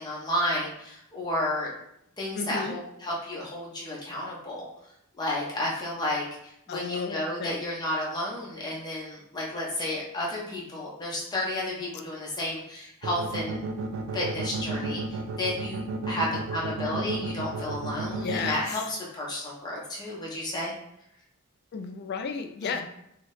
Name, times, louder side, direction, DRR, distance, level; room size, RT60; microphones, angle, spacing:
voice 1, 0.0-1.7 2.2-4.6 5.2-13.6 14.1-20.7 22.6-22.8, left 1 dB, 20° left, -4 dB, 0.7 m, -32 dB
voice 2, 2.4-2.7 6.7-7.6 18.1-18.8 21.7-22.8, left 5 dB, 50° left, 6 dB, 0.3 m, -33 dB
sound 1, 13.0-18.5, right 3 dB, 65° right, 0.4 m, -32 dB
2.8 x 2.7 x 3.1 m, 0.77 s
head